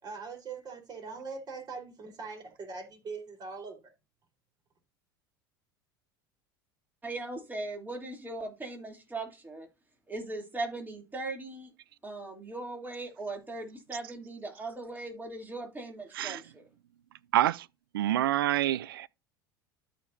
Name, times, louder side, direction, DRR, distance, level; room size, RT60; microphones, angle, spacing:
voice 1, 0.0-3.9, right 4 dB, 35° right, 4.1 m, -42 dB
voice 2, 7.0-9.7 10.1-11.7 12.0-16.6, right 2 dB, 15° right, 2.8 m, -39 dB
voice 3, 17.3-17.7 17.9-19.1, right 13 dB, 75° right, 0.4 m, -27 dB
13.5 x 5.0 x 2.6 m
hypercardioid pair, 80°, 12 cm